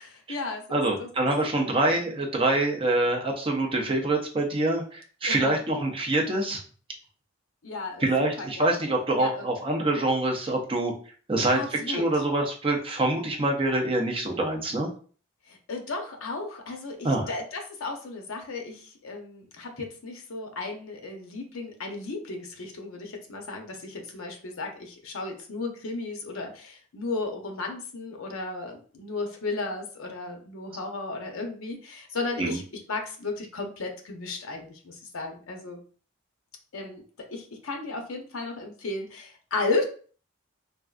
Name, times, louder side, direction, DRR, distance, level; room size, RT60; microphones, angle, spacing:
voice 1, 0.0-1.1 1.5-1.6 1.9-2.0 5.3-5.6 7.6-8.7 9.2-9.5 9.9-10.0 11.5-12.1 15.5-32.6 32.9-35.8 36.7-39.8, left 3 dB, 70° left, 3 dB, 0.6 m, -34 dB
voice 2, 0.7-6.6 8.0-10.9 11.3-11.6 11.9-14.9 17.0-17.3 32.4-32.6, right 2 dB, 25° right, 0 dB, 0.5 m, -25 dB
3.4 x 2.3 x 2.4 m, 0.41 s
head